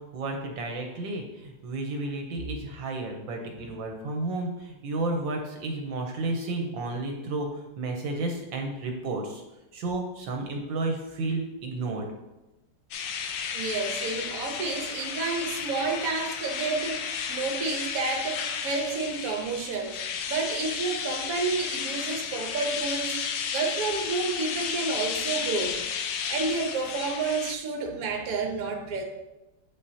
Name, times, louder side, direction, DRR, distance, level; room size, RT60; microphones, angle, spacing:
voice 1, 0.0-9.4 9.7-12.1, right 2 dB, 70° right, 2 dB, 1.4 m, -32 dB
sound 1, 12.9-27.6, left 7 dB, 70° left, 1.2 m, -33 dB
voice 2, 13.5-20.0 20.3-23.2 23.5-25.8 26.3-29.0, right 4 dB, 55° right, 3 dB, 1.1 m, -30 dB
8.4 x 5.4 x 2.8 m, 1.0 s
omnidirectional pair, 2.2 m